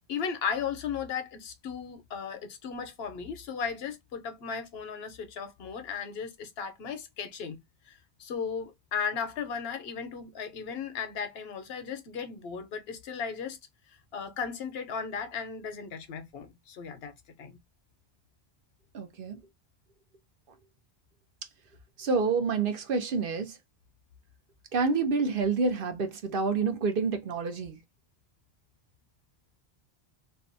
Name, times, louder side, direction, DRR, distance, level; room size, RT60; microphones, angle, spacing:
voice 1, 0.1-7.6 7.9-13.6 14.1-17.1 17.4-17.5, left 6 dB, 80° left, 0.9 m, -36 dB
voice 2, 18.9-19.4 22.0-23.6 24.7-27.8, right 4 dB, 60° right, 0.8 m, -28 dB
2.6 x 2.2 x 2.6 m
omnidirectional pair, 1.0 m